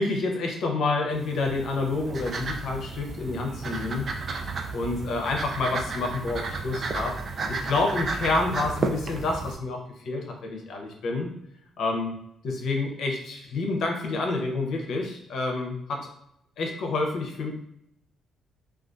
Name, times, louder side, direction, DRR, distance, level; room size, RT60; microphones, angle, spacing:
voice 1, 0.0-4.1 4.7-7.2 7.5-11.3 11.8-12.1 12.4-16.1 16.6-17.5, left 3 dB, 70° left, 1 dB, 0.5 m, -28 dB
sound 1, 1.1-9.5, right 3 dB, 50° right, 0.3 m, -33 dB
2.5 x 2.3 x 2.3 m, 0.75 s
cardioid pair, 90°, 0 cm